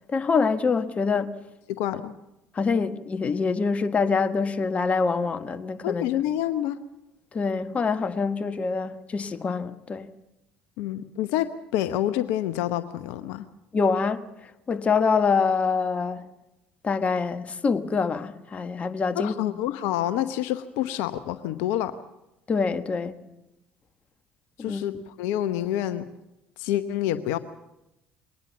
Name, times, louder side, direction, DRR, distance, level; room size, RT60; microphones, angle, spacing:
voice 1, 0.1-1.4 2.5-6.1 7.3-10.1 13.7-14.3 14.7-16.2 16.8-19.5 22.5-23.1 24.6-24.8, left 5 dB, 30° left, 1.4 m, -25 dB
voice 2, 1.7-2.1 5.8-6.8 10.8-13.5 19.2-21.9 24.6-26.1 26.6-27.4, left 12 dB, 65° left, 0.9 m, -27 dB
22.0 x 19.0 x 7.3 m
hypercardioid pair, 60°, 4 cm